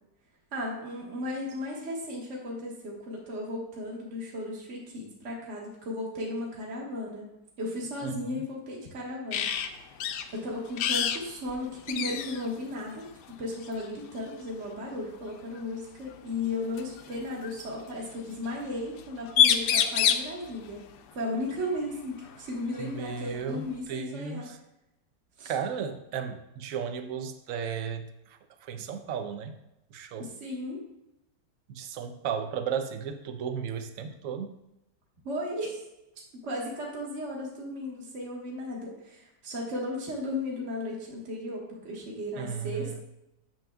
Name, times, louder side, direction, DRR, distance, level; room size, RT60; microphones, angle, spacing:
voice 1, 0.5-7.3 7.6-9.9 10.3-20.8 21.2-24.5 25.4-25.5 30.4-30.8 35.2-35.8 36.4-43.0, left 1 dB, 45° right, -3 dB, 1.8 m, -35 dB
voice 2, 8.0-8.4 22.8-24.6 25.4-29.5 29.9-30.3 31.7-34.5 42.4-43.0, right 7 dB, 60° right, 8 dB, 0.9 m, -35 dB
sound 1, 9.3-9.7 10.0-10.3 10.8-11.2 11.5-11.6 11.9-12.5 13.6-13.9 15.6-15.7 16.8-17.6 19.0-19.1 19.3-20.3 22.3-22.4 22.8-23.8, left 9 dB, 75° left, 1.1 m, -26 dB
10.5 x 7.2 x 2.4 m, 0.87 s
omnidirectional pair, 1.9 m